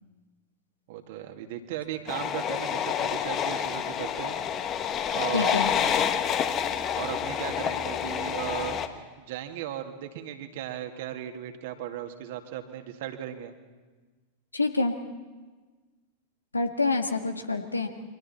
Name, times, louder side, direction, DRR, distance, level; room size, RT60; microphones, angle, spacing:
voice 1, 0.9-4.4 5.1-5.6 6.9-8.8 9.2-13.5 17.6-17.7, right 11 dB, 50° right, 5 dB, 2.2 m, -36 dB
sound 1, 2.1-8.9, left 8 dB, 30° left, 1.5 m, -28 dB
voice 2, 5.3-5.7 14.5-14.9 16.5-17.9, left 3 dB, 80° left, 6 dB, 1.7 m, -27 dB
29.0 x 24.5 x 4.3 m, 1.3 s
figure-of-eight pair, 90°, 0 cm